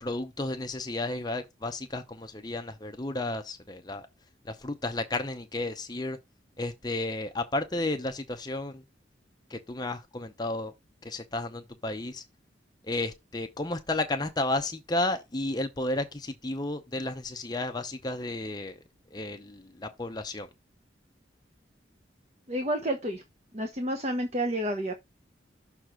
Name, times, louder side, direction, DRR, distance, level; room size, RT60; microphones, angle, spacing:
voice 1, 0.0-4.1 4.5-6.2 6.6-8.8 9.5-10.7 11.0-12.2 12.9-18.7 19.1-20.5, left 2 dB, 20° left, 0.7 m, -32 dB
voice 2, 22.5-23.2 23.5-24.9, right 1 dB, 35° right, 1.1 m, -30 dB
6.6 x 3.4 x 6.0 m
head